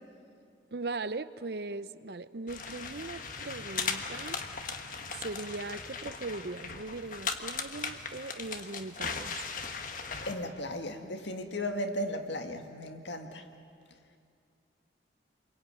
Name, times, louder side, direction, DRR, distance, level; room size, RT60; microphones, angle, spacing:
voice 1, 0.7-4.4 5.1-9.4, right 3 dB, 60° right, 0.7 m, -39 dB
sound 1, 2.5-10.3, left 5 dB, 45° left, 1.5 m, -38 dB
voice 2, 10.3-13.5, left 1 dB, 80° left, 1.9 m, -36 dB
28.5 x 22.5 x 9.3 m
head